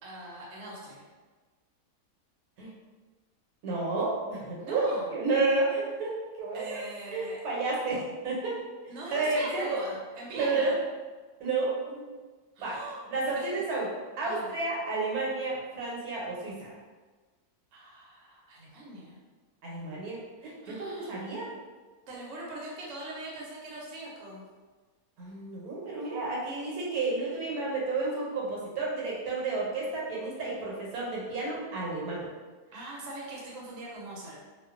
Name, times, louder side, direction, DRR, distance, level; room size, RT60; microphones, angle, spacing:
voice 1, 0.0-1.0 4.6-5.1 6.5-7.4 8.9-10.8 12.6-13.0 13.3-13.6 14.2-14.5 17.7-19.2 20.6-21.1 22.1-24.4 32.7-34.4, right 1 dB, 65° right, -4 dB, 0.9 m, -41 dB
voice 2, 3.6-4.8 5.1-6.8 7.1-8.6 9.1-9.8 10.3-10.7 11.4-12.0 12.6-12.8 13.1-13.9 14.2-16.7 19.6-21.5 25.2-32.3, right 3 dB, 80° right, -4 dB, 1.2 m, -31 dB
2.4 x 2.2 x 2.4 m, 1.3 s
omnidirectional pair, 1.6 m